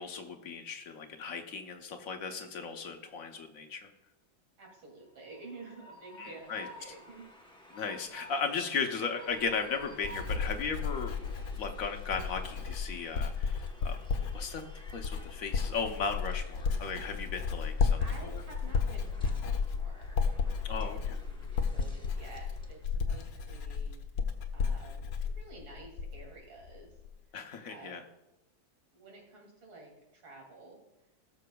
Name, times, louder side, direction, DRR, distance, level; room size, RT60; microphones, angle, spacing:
voice 1, 0.0-3.9 6.2-6.7 7.7-14.0 14.3-14.6 14.9-18.4 20.6-21.2 27.3-28.0, left 5 dB, 55° left, 4 dB, 1.1 m, -36 dB
voice 2, 4.6-7.3 18.0-21.4 21.6-22.8 23.1-24.3 24.5-26.9 27.7-28.0 28.9-30.8, right 2 dB, 90° right, 0 dB, 3.5 m, -51 dB
Train, 5.0-22.8, equal, 5° left, 0.4 m, -55 dB
Writing, 9.3-26.4 26.6-27.1, left 5 dB, 70° left, 1.5 m, -33 dB
18.0 x 6.7 x 2.3 m, 0.95 s
omnidirectional pair, 2.1 m